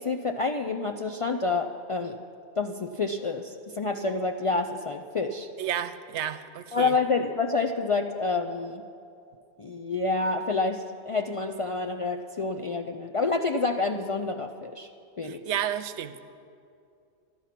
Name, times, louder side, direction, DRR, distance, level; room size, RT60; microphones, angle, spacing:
voice 1, 0.0-2.2 2.6-5.5 6.7-8.8 9.6-14.9 15.2-15.4, left 3 dB, 55° left, 4 dB, 0.3 m, -28 dB
voice 2, 5.6-6.9 15.2-16.1, right 10 dB, 85° right, 12 dB, 0.9 m, -31 dB
12.5 x 12.0 x 5.8 m, 2.5 s
omnidirectional pair, 1.1 m